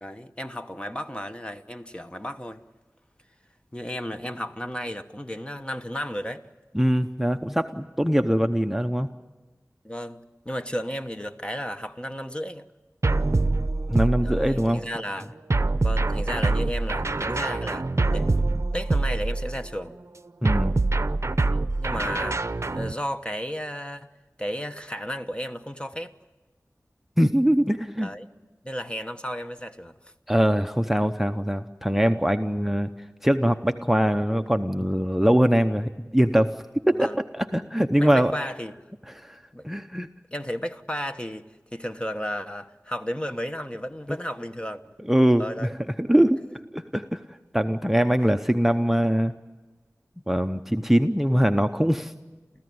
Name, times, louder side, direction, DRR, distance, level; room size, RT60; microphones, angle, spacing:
voice 1, 0.0-2.6 3.7-6.4 9.8-12.7 14.2-15.4 15.8-18.3 18.7-19.9 21.5-26.1 28.0-28.3 28.6-30.1 36.9-37.2 38.0-38.7 39.5-39.7 40.3-44.9 45.4-45.8, equal, 15° left, 1.1 m, -33 dB
voice 2, 6.7-9.1 13.9-14.8 20.4-20.8 27.2-28.1 30.3-32.9 33.2-36.5 36.9-38.3 39.1-39.4 39.6-40.1 44.1-44.2 45.1-45.7 46.0-47.2 47.5-49.3 50.3-52.1, equal, 5° right, 0.8 m, -22 dB
sound 1, 13.0-14.8 15.5-19.7 20.4-22.9, right 3 dB, 50° right, 0.7 m, -25 dB
30.0 x 14.5 x 9.5 m
wide cardioid pair, 60°, 6 cm